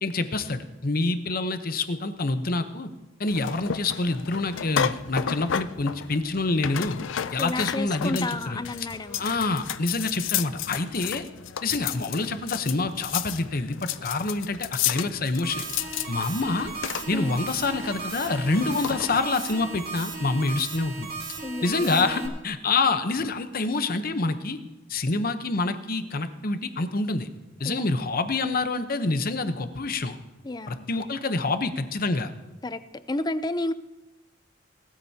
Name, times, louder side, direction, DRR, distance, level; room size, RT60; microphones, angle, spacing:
voice 1, 0.0-2.9 3.2-7.0 7.3-8.6 9.2-11.2 11.6-15.6 16.1-16.7 17.1-21.1 21.6-24.6 24.9-27.3 27.6-30.2 30.7-32.3, left 3 dB, 50° left, 9 dB, 0.9 m, -27 dB
sound 1, 3.3-19.2, left 9 dB, 70° left, 0.5 m, -33 dB
voice 2, 7.4-9.2 17.1-17.3 21.4-22.3 27.6-28.0 30.4-30.9 32.6-32.8 33.1-33.7, left 2 dB, 20° left, 13 dB, 0.5 m, -31 dB
sound 2, 15.4-22.3, right 3 dB, 55° right, 2.4 m, -36 dB
19.0 x 13.5 x 2.8 m, 1.1 s
head